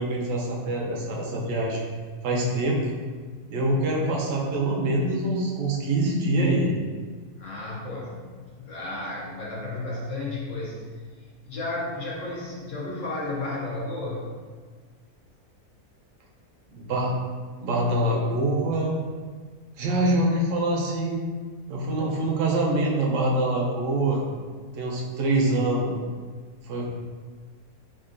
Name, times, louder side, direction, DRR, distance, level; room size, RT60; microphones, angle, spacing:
voice 1, 0.0-1.8 2.2-2.8 3.5-6.7 16.7-17.1 17.6-19.0 19.8-21.2 21.7-24.2 24.8-25.9 26.7-26.8, right 1 dB, 65° right, -2 dB, 0.9 m, -24 dB
voice 2, 7.4-10.9 11.4-14.4 22.0-22.2, left 2 dB, 60° left, -5 dB, 1.0 m, -33 dB
3.7 x 2.4 x 2.5 m, 1.5 s
omnidirectional pair, 1.6 m